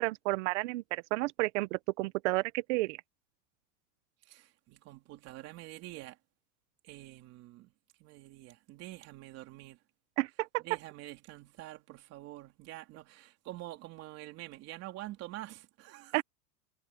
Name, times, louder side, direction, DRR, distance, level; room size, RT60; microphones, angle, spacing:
voice 1, 0.0-3.0 10.2-10.6 16.1-16.2, right 21 dB, 50° right, 0.8 m, -31 dB
voice 2, 4.3-6.2 6.8-7.7 8.0-9.8 10.6-16.2, right 16 dB, 35° right, 3.2 m, -47 dB
supercardioid pair, 170°, 46 cm